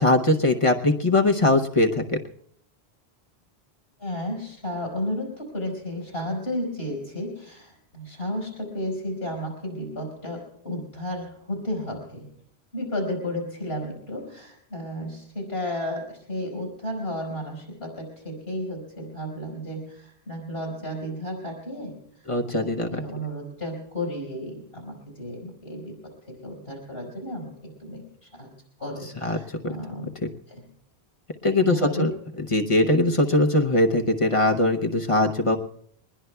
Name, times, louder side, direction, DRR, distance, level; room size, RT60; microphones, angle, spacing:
voice 1, 0.0-2.2 22.3-23.0 29.2-29.4 29.6-29.7 30.2-30.3 31.4-32.1 32.5-35.6, left 2 dB, 35° left, 2 dB, 0.8 m, -21 dB
voice 2, 4.0-12.3 12.7-21.9 22.5-26.0 26.3-28.5 28.8-30.1 30.5-30.7 31.5-32.1, left 1 dB, 85° left, 1 dB, 5.1 m, -33 dB
23.5 x 20.0 x 2.3 m, 0.66 s
omnidirectional pair, 1.0 m